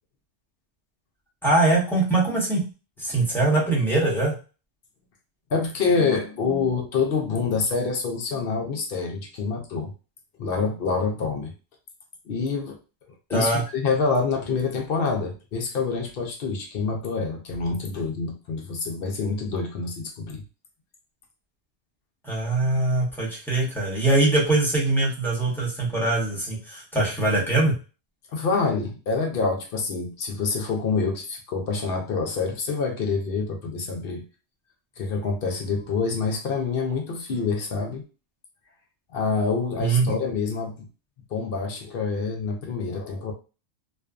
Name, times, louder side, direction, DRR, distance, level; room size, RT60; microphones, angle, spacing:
voice 1, 1.4-2.6 3.0-4.4 13.3-13.6 22.2-27.7 39.8-40.1, right 2 dB, ahead, -5 dB, 0.9 m, -22 dB
voice 2, 5.5-9.9 10.4-11.5 12.3-12.8 13.3-20.4 28.3-34.3 35.0-38.0 39.1-40.9 41.3-43.3, left 4 dB, 60° left, 2 dB, 0.7 m, -26 dB
2.5 x 2.3 x 2.3 m, 0.32 s
omnidirectional pair, 1.2 m